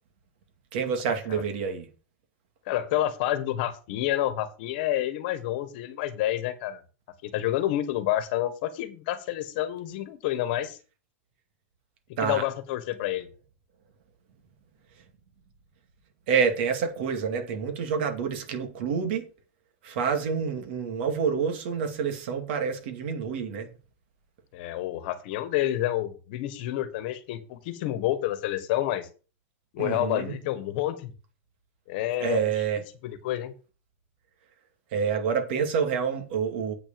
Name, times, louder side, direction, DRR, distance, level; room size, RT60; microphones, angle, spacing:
voice 1, 0.7-1.9 12.2-12.4 16.3-19.3 19.8-23.7 29.8-30.4 32.2-32.8 34.9-36.7, right 6 dB, 55° right, 2.4 m, -28 dB
voice 2, 2.7-6.8 7.2-10.8 12.2-13.3 24.5-29.1 29.7-31.1 31.9-32.5 33.0-33.5, left 13 dB, 50° left, 1.5 m, -29 dB
8.4 x 6.3 x 7.0 m
supercardioid pair, 175°, 7 cm